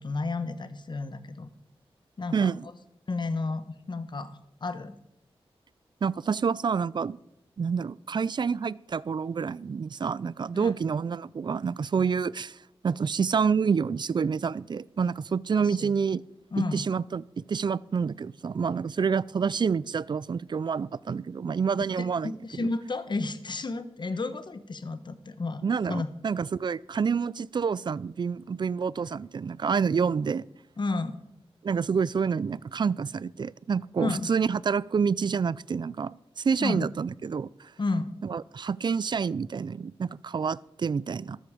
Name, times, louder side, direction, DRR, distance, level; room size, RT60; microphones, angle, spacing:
voice 1, 0.0-1.5 2.2-2.5 3.1-4.9 10.5-10.7 15.5-15.9 16.5-16.9 22.0-25.6 25.9-26.1 30.8-31.2 34.0-34.3 36.6-36.9 37.8-38.1, left 3 dB, 50° left, 12 dB, 1.1 m, -32 dB
voice 2, 2.3-2.6 6.0-7.2 7.6-12.6 12.8-16.2 16.6-22.7 25.6-30.4 31.6-37.7 38.2-41.4, right 6 dB, 50° right, 22 dB, 0.4 m, -28 dB
13.0 x 13.0 x 5.1 m, 0.81 s
wide cardioid pair, 80°, 10 cm